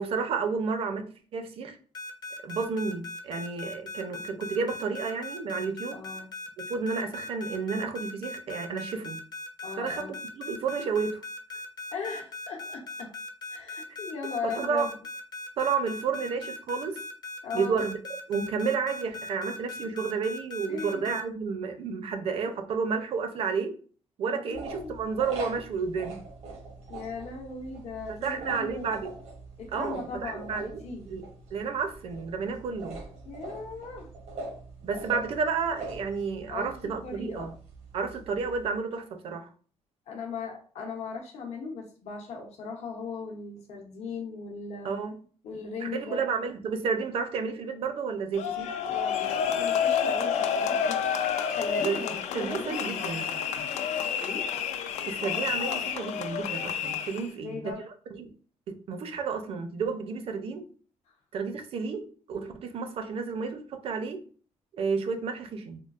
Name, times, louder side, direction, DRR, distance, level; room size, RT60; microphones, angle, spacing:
voice 1, 0.0-1.8 2.4-6.0 6.7-9.2 9.8-11.2 14.4-14.9 15.6-17.0 17.5-18.0 18.3-23.8 24.2-26.2 28.1-29.1 29.7-33.0 34.8-37.5 37.9-39.5 44.8-45.2 45.8-48.7 51.8-52.1 52.3-53.3 55.1-58.3 58.7-60.7 61.3-64.2 64.8-65.8, right 5 dB, 55° right, 0.5 m, -31 dB
sound 1, 1.9-21.2, left 3 dB, 35° left, 0.5 m, -39 dB
voice 2, 5.9-6.3 9.6-10.1 11.9-13.1 13.5-14.9 17.4-17.8 20.7-21.2 24.3-25.0 26.9-28.9 29.6-31.1 33.3-34.1 36.5-37.5 40.1-44.9 45.4-46.2 48.9-53.3 54.2-54.5 57.3-57.8, left 4 dB, 70° left, 0.8 m, -38 dB
sound 2, 24.5-38.7, right 3 dB, 85° right, 1.0 m, -43 dB
sound 3, 48.4-57.3, left 7 dB, 85° left, 0.4 m, -29 dB
3.7 x 2.3 x 2.4 m
cardioid pair, 140°, 12 cm